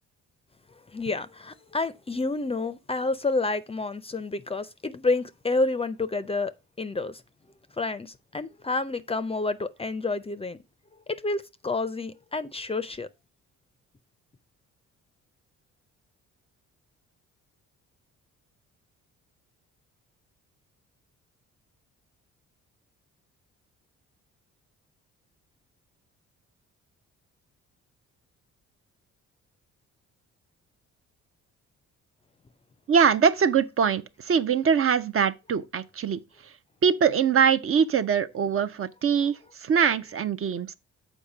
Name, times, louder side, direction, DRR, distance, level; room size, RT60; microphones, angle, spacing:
voice 1, 0.9-6.5 6.8-7.2 7.7-10.6 11.1-13.1, left 3 dB, 20° left, 0.5 m, -29 dB
voice 2, 32.9-36.2 36.8-40.7, right 7 dB, 45° right, 0.6 m, -23 dB
7.2 x 4.5 x 4.9 m
cardioid pair, 90°, 30 cm